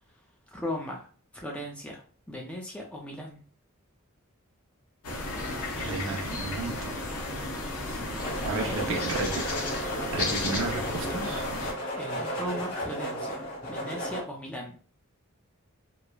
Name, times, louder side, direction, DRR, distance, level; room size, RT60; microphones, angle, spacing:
voice 1, 0.5-1.1 1.3-3.4 7.8-9.3 12.0-14.8, equal, 5° left, -1 dB, 0.3 m, -38 dB
sound 1, 5.0-11.7, left 2 dB, 85° left, 0.7 m, -33 dB
voice 2, 5.8-6.9 8.4-11.4, right 3 dB, 65° right, 1 dB, 0.6 m, -33 dB
sound 2, 8.2-14.2, equal, 50° left, 1.5 m, -34 dB
3.0 x 2.0 x 2.3 m, 0.42 s
head